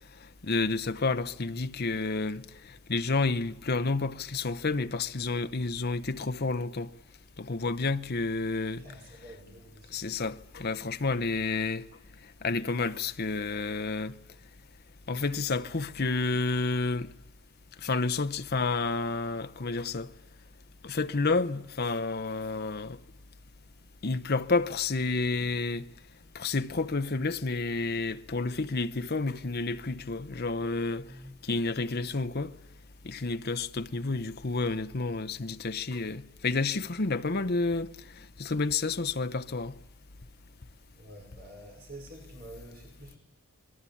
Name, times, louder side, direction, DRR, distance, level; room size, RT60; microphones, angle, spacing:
voice 1, 0.4-2.4 2.9-6.9 7.4-8.8 9.9-11.8 12.4-14.1 15.1-17.1 17.8-20.1 20.8-23.0 24.0-25.9 26.3-31.0 31.4-32.5 33.0-37.9 38.4-39.7, left 3 dB, 45° left, 0.8 m, -30 dB
voice 2, 8.8-10.1 10.8-10.9 31.0-31.3 41.0-43.2, right 1 dB, 40° right, 5.5 m, -48 dB
26.5 x 22.5 x 8.6 m
head